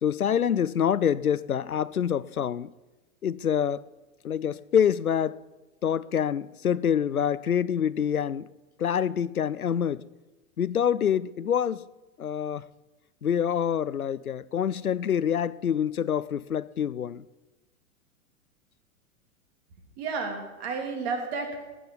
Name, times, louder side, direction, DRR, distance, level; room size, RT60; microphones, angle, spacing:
voice 1, 0.0-2.7 3.2-3.8 4.2-5.4 5.8-8.5 8.8-10.0 10.6-11.8 12.2-12.7 13.2-17.2, left 8 dB, 90° left, 0.6 m, -26 dB
voice 2, 20.0-21.6, right 4 dB, 50° right, 3.0 m, -32 dB
16.0 x 9.5 x 5.3 m
figure-of-eight pair, 100°, 42 cm